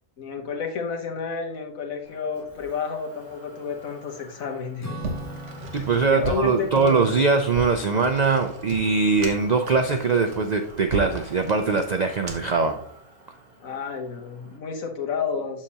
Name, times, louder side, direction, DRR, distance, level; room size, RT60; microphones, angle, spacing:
voice 1, 0.2-5.0 5.7-7.0 13.6-15.6, left 5 dB, 75° left, 2 dB, 1.5 m, -30 dB
Motor vehicle (road), 2.0-14.6, right 1 dB, 35° right, 3.0 m, -48 dB
Acoustic guitar / Strum, 4.8-9.6, equal, 15° left, 0.7 m, -42 dB
sound 1, 5.0-12.6, right 3 dB, 60° right, 1.5 m, -36 dB
voice 2, 5.7-12.8, right 4 dB, 85° right, 6 dB, 0.3 m, -22 dB
7.3 x 6.6 x 2.9 m, 0.63 s
omnidirectional pair, 1.5 m